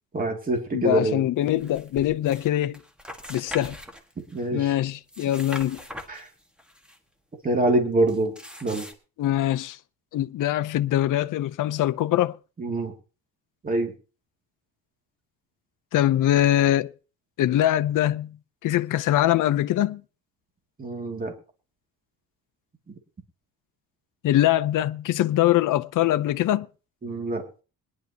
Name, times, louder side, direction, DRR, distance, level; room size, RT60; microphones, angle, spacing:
voice 1, 0.1-1.3 4.3-4.8 6.1-6.3 7.4-8.3 8.6-8.9 12.6-12.9 13.6-13.9 20.8-21.3 27.0-27.4, right 2 dB, 25° right, 2.4 m, -25 dB
voice 2, 0.7-2.8 3.3-3.8 4.5-5.8 9.2-9.8 10.1-12.4 15.9-16.9 17.4-18.3 18.6-20.0 24.2-26.7, left 13 dB, 55° left, 0.6 m, -23 dB
sound 1, 1.5-2.5 2.7-4.5 4.9-7.0 8.1-8.9, left 1 dB, 5° right, 1.4 m, -41 dB
22.0 x 11.0 x 2.9 m
cardioid pair, 160°, 37 cm